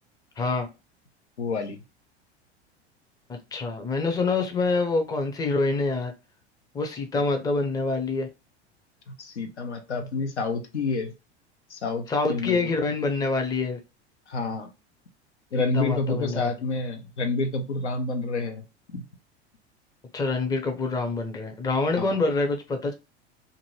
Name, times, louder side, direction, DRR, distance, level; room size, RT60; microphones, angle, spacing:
voice 1, 0.4-0.7 3.3-6.1 6.7-8.3 12.1-13.8 15.6-16.5 20.1-22.9, left 3 dB, 10° left, 0.5 m, -26 dB
voice 2, 1.4-1.8 9.2-11.1 11.7-12.6 14.3-14.7 15.5-18.6 18.9-19.0 22.0-22.1, left 3 dB, 80° left, 0.7 m, -28 dB
2.6 x 2.6 x 3.0 m
figure-of-eight pair, 80°, 34 cm